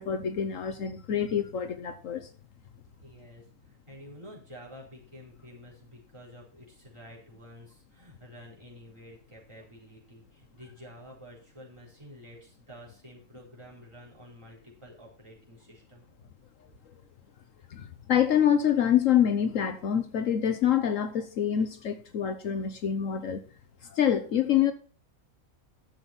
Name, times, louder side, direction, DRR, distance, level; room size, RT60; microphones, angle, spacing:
voice 1, 0.0-2.3 17.7-23.4 23.9-24.7, left 9 dB, 65° left, 1.2 m, -26 dB
voice 2, 3.0-16.0, equal, 20° right, 4.5 m, -50 dB
11.5 x 7.3 x 4.2 m
omnidirectional pair, 1.5 m